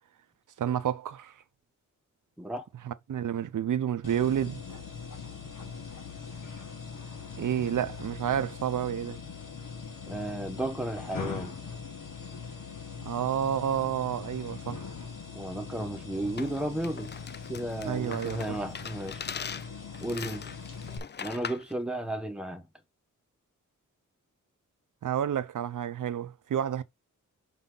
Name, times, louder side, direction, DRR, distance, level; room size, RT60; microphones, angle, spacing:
voice 1, 0.6-1.3 2.9-4.8 7.4-9.2 13.0-14.9 17.9-18.6 25.0-26.8, right 9 dB, 75° right, 0.6 m, -30 dB
sound 1, 4.0-21.0, left 5 dB, 85° left, 1.8 m, -41 dB
voice 2, 10.1-11.6 15.3-17.1 17.5-19.2 20.0-20.5 21.2-22.7, right 1 dB, 5° right, 1.1 m, -34 dB
sound 2, 16.4-21.7, left 7 dB, 35° left, 0.4 m, -41 dB
5.6 x 5.5 x 3.9 m
wide cardioid pair, 130°, 31 cm